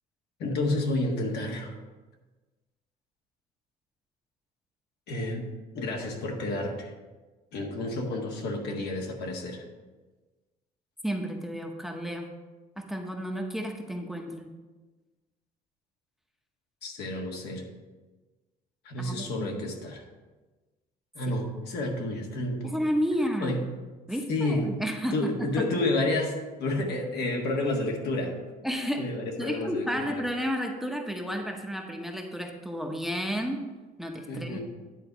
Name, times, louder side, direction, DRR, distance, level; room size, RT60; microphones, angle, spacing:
voice 1, 0.4-1.8 5.1-5.5 5.7-6.9 7.5-9.6 16.8-17.6 18.9-20.0 21.2-22.7 23.4-23.6 24.3-24.8 25.1-28.4 29.0-30.2 34.3-34.6, left 2 dB, 75° left, 1 dB, 1.6 m, -30 dB
voice 2, 11.0-12.3 12.8-14.5 19.0-19.5 21.3-21.4 22.6-23.6 24.1-25.3 28.6-29.1 29.4-33.6 34.0-34.6, equal, ahead, 2 dB, 0.9 m, -31 dB
10.0 x 4.0 x 6.0 m, 1.2 s
cardioid pair, 110°, 17 cm